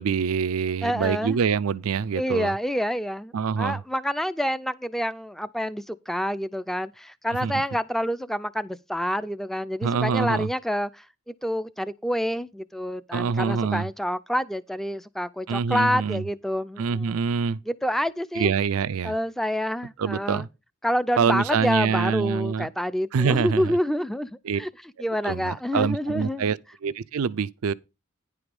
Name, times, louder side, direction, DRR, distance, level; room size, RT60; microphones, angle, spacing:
voice 1, 0.0-2.5 3.3-3.8 7.4-7.6 9.8-10.5 13.1-13.9 15.5-16.2 16.8-17.6 18.4-19.2 20.0-20.5 21.2-22.7 23.1-23.8 24.4-24.6 25.2-27.7, right 6 dB, 80° right, 0.4 m, -25 dB
voice 2, 0.8-1.4 2.1-17.2 17.7-18.5 19.0-20.4 20.8-24.3 24.6-24.7 25.0-26.4, equal, ahead, 0.4 m, -27 dB
10.0 x 4.9 x 5.3 m
head